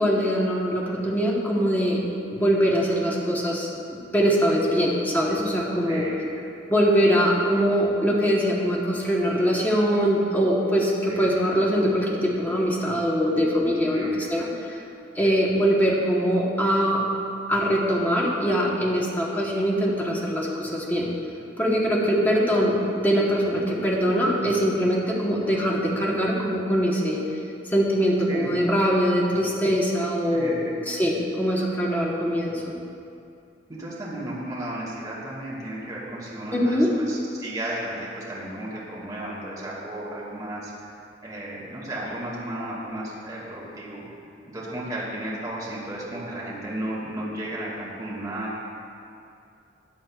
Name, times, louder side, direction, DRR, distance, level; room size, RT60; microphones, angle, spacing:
voice 1, 0.0-2.0 2.3-6.1 6.7-14.8 15.1-17.1 17.5-21.1 21.6-27.2 27.7-30.6 30.9-32.7 36.5-36.9, equal, 10° left, -3 dB, 1.2 m, -23 dB
voice 2, 5.9-6.2 11.1-11.3 13.9-14.1 15.2-15.4 22.5-22.7 28.3-28.5 30.3-30.8 33.7-40.7 41.2-44.1 44.5-48.6, right 1 dB, 20° right, -7 dB, 2.1 m, -34 dB
14.5 x 8.4 x 2.4 m, 2.5 s
head